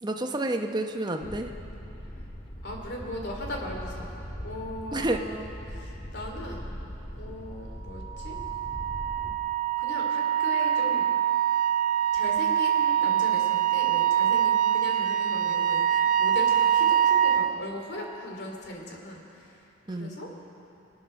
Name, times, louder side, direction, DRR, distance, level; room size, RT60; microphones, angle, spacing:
voice 1, 0.0-1.5 4.9-5.2 19.9-20.2, right 1 dB, 20° right, 4 dB, 0.9 m, -29 dB
sound 1, 1.2-9.3, equal, 30° left, 2.0 m, -40 dB
voice 2, 2.6-6.6 7.2-8.4 9.8-11.1 12.1-19.6 19.9-20.3, equal, 60° left, 0 dB, 2.8 m, -38 dB
Wind instrument woodwind instrument, 8.1-17.5, right 10 dB, 40° right, 0.5 m, -24 dB
23.5 x 9.4 x 6.5 m, 2.8 s
head